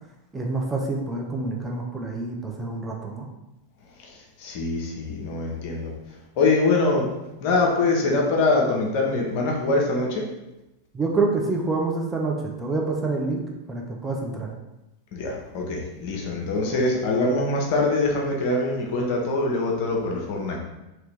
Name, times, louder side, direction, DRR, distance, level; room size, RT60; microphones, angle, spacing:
voice 1, 0.3-3.3 10.9-13.4 13.7-14.5, right 3 dB, 10° right, -1 dB, 0.5 m, -27 dB
voice 2, 4.0-5.9 6.4-7.1 7.4-10.3 15.1-20.6, left 2 dB, 45° left, -1 dB, 0.7 m, -24 dB
2.9 x 2.8 x 3.3 m, 0.97 s
figure-of-eight pair, 90°, 0 cm